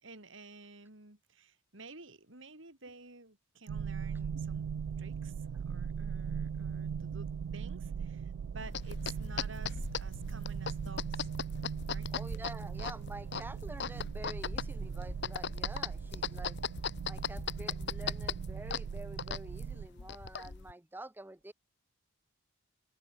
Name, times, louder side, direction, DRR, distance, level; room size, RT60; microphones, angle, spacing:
voice 1, 0.0-4.7 5.0-11.3 11.8-12.1, right 3 dB, 60° right, 3.5 m, -52 dB
sound 1, 3.7-19.9, right 7 dB, 80° right, 0.3 m, -39 dB
sound 2, 6.1-19.3, left 1 dB, 80° left, 3.8 m, -66 dB
sound 3, 8.6-20.7, left 6 dB, 50° left, 0.8 m, -39 dB
voice 2, 12.1-16.6 17.1-21.5, right 1 dB, 10° right, 0.6 m, -48 dB
head